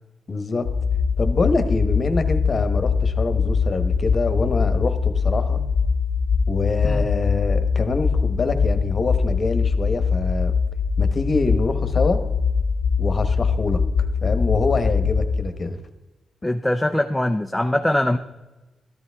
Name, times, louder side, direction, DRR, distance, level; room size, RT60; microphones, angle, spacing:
voice 1, 0.3-0.7 1.2-5.6 6.5-10.5 11.0-12.2 13.0-13.8 14.2-15.8, left 3 dB, 35° left, 9 dB, 1.2 m, -25 dB
sound 1, 0.7-15.4, left 5 dB, 70° left, 0.6 m, -22 dB
voice 2, 16.4-18.2, left 1 dB, 5° left, 5 dB, 0.5 m, -22 dB
13.5 x 11.0 x 3.5 m, 1.1 s
cardioid pair, 100°, 0 cm